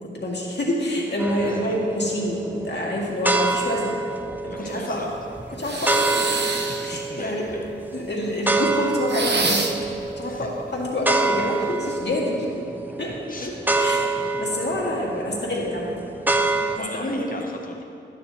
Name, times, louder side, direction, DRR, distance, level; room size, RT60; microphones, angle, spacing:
voice 1, 0.0-4.0 4.4-5.0 5.5-6.1 6.8-7.5 7.9-9.7 10.2-12.7 13.0-13.1 13.4-13.5 13.8-14.0 14.4-15.9 16.7-17.3, left 1 dB, 60° left, -4 dB, 2.0 m, -27 dB
sound 1, 1.2-16.8, right 3 dB, 10° right, 0.5 m, -27 dB
voice 2, 1.3-1.8 4.5-5.1 5.4-5.6 6.5-6.8 7.1-7.9 10.3-10.5 13.3-13.5 16.6-17.8, left 3 dB, 45° left, 2 dB, 0.7 m, -39 dB
sound 2, 5.6-7.0 9.1-9.9, right 3 dB, 60° right, 0.8 m, -26 dB
14.0 x 9.6 x 2.8 m, 2.5 s
wide cardioid pair, 70°, 20 cm